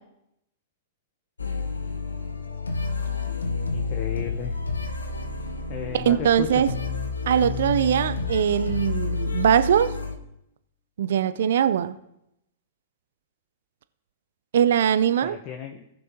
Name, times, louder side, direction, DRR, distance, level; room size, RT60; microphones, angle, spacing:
sound 1, 1.4-10.1, left 4 dB, 90° left, 1.1 m, -30 dB
voice 1, 3.7-4.5 5.7-6.6 15.2-15.8, left 8 dB, 40° left, 0.9 m, -34 dB
voice 2, 5.9-6.7 7.3-10.0 11.0-12.0 14.5-15.4, right 9 dB, 65° right, 0.5 m, -21 dB
18.0 x 6.0 x 3.0 m
hypercardioid pair, 105°, 0 cm